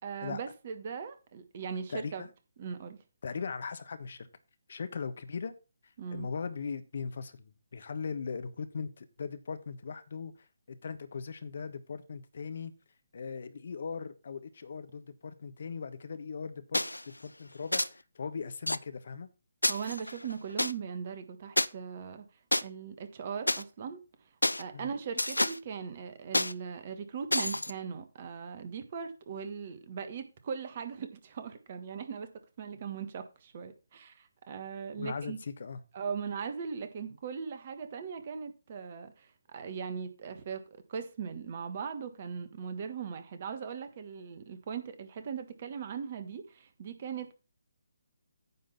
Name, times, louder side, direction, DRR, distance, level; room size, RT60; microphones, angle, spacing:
voice 1, 0.0-2.3 2.6-3.0 6.0-6.3 19.7-22.2 22.6-24.0 24.6-32.3 32.6-35.4 35.9-40.6 40.9-47.3, right 6 dB, 40° right, 1.5 m, -39 dB
voice 2, 1.9-2.3 3.2-4.3 4.7-5.5 5.8-10.3 10.7-12.7 13.1-19.3 24.7-24.9 35.0-35.8, left 5 dB, 55° left, 1.1 m, -39 dB
sound 1, 16.7-17.0 17.7-17.9 18.7-18.8 19.6-20.7 21.6-21.7 22.5-22.6 23.5-23.6 24.4-24.6 25.2-25.6 26.3-26.5 27.3-27.7, left 1 dB, 90° left, 0.5 m, -28 dB
9.5 x 3.8 x 7.2 m
figure-of-eight pair, 145°, 0 cm